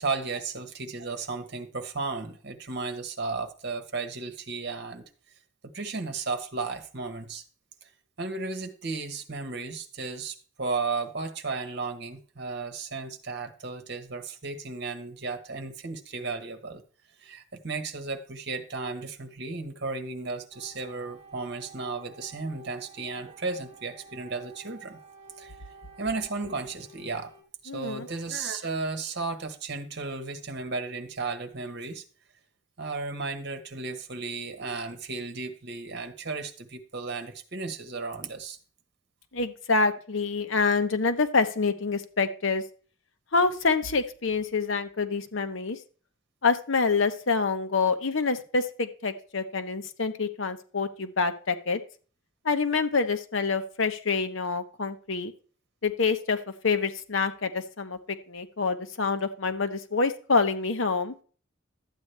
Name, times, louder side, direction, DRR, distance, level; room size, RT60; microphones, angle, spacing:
voice 1, 0.0-5.0 5.7-7.4 7.8-7.9 8.2-16.8 17.2-25.0 25.4-25.6 26.0-27.3 27.6-32.0 32.8-38.6, right 4 dB, 55° right, 7 dB, 1.2 m, -34 dB
sound 1, 20.5-27.4, right 3 dB, 30° right, 2.1 m, -51 dB
voice 2, 27.7-28.1 39.3-42.6 43.3-45.8 46.4-51.8 52.4-55.3 55.8-61.2, left 4 dB, 70° left, 8 dB, 0.9 m, -26 dB
12.0 x 8.4 x 3.3 m, 0.41 s
head